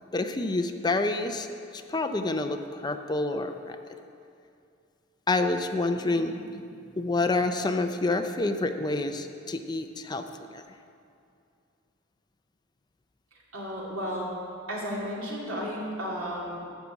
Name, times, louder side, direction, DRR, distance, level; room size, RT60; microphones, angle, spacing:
voice 1, 0.1-1.5 1.7-3.9 5.3-10.2 10.5-10.6, left 2 dB, 20° left, 7 dB, 0.5 m, -28 dB
voice 2, 13.5-14.4 14.7-16.6, equal, 80° right, -4 dB, 2.8 m, -33 dB
11.5 x 6.0 x 8.2 m, 2.5 s
head